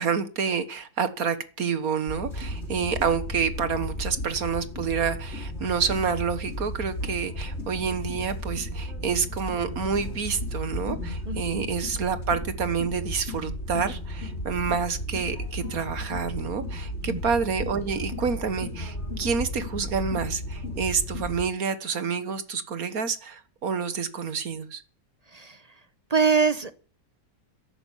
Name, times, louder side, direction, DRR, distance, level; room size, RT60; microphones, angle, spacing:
voice 1, 0.0-24.8, right 6 dB, 55° right, 1.9 m, -28 dB
sound 1, 2.1-21.4, left 1 dB, 35° left, 3.8 m, -34 dB
voice 2, 11.3-11.7 17.1-17.2 25.3-25.6 26.1-26.7, right 5 dB, 30° right, 0.8 m, -24 dB
13.0 x 11.5 x 7.4 m
omnidirectional pair, 1.8 m